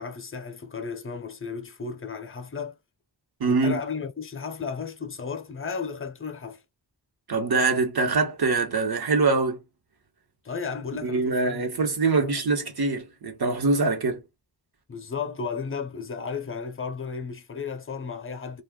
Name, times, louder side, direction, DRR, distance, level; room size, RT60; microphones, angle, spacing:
voice 1, 0.0-2.8 3.4-6.6 10.4-11.7 12.2-12.3 14.9-18.6, left 5 dB, 30° left, 0.6 m, -34 dB
voice 2, 3.4-3.8 7.3-9.6 11.0-14.2, right 3 dB, 60° right, 1.1 m, -24 dB
2.4 x 2.4 x 3.6 m
wide cardioid pair, 75°, 42 cm